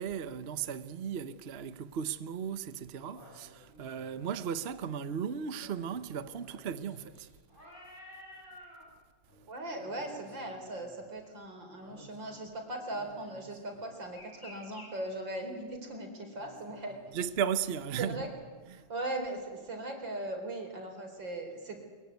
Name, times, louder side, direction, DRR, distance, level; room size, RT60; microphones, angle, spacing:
voice 1, 0.0-7.3 17.1-18.2 18.7-18.8, right 8 dB, 45° right, 0.8 m, -36 dB
sound 1, 3.0-4.3 5.5-8.9 9.3-9.4 9.8-11.3 11.8-12.5 12.9-14.9 16.3-17.4 18.2-18.3, equal, 25° left, 7.3 m, -54 dB
voice 2, 9.5-17.0 18.0-18.3 18.7-21.8, right 1 dB, 75° right, 4.9 m, -39 dB
23.0 x 22.5 x 9.3 m
omnidirectional pair, 2.0 m